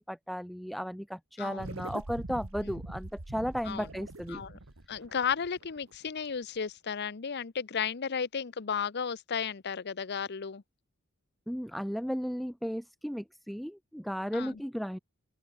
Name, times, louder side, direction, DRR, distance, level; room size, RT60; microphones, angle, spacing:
voice 1, 0.1-4.4 11.5-15.0, equal, ahead, 1.0 m, -35 dB
voice 2, 1.4-1.7 2.6-2.8 3.7-3.9 4.3-4.6 4.9-10.6 14.3-14.6, left 6 dB, 50° left, 0.7 m, -34 dB
sound 1, 1.6-6.2, right 2 dB, 75° right, 1.8 m, -43 dB
open air
head